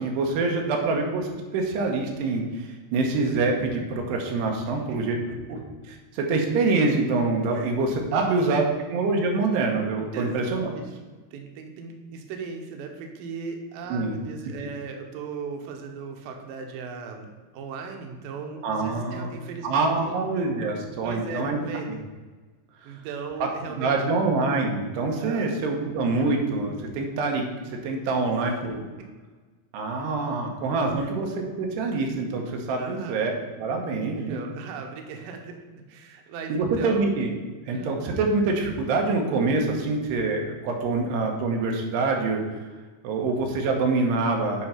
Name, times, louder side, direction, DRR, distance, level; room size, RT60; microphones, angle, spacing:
voice 1, 0.0-5.2 5.5-5.6 5.9-8.6 8.9-10.7 13.9-14.2 18.6-19.3 19.6-21.6 23.4-28.8 29.7-33.3 33.6-34.4 36.5-37.3 37.7-42.4 43.0-44.7, right 3 dB, 90° right, 2 dB, 3.3 m, -25 dB
voice 2, 4.7-5.0 7.5-7.7 8.1-8.7 10.1-10.4 10.7-11.0 11.3-20.1 20.8-22.0 22.8-23.9 25.2-25.6 28.2-28.5 31.0-31.1 32.8-33.2 34.0-35.6 35.9-37.1 37.7-38.0 41.0-41.1, right 5 dB, 70° right, 3 dB, 2.3 m, -38 dB
8.3 x 4.5 x 5.7 m, 1.3 s
omnidirectional pair, 4.6 m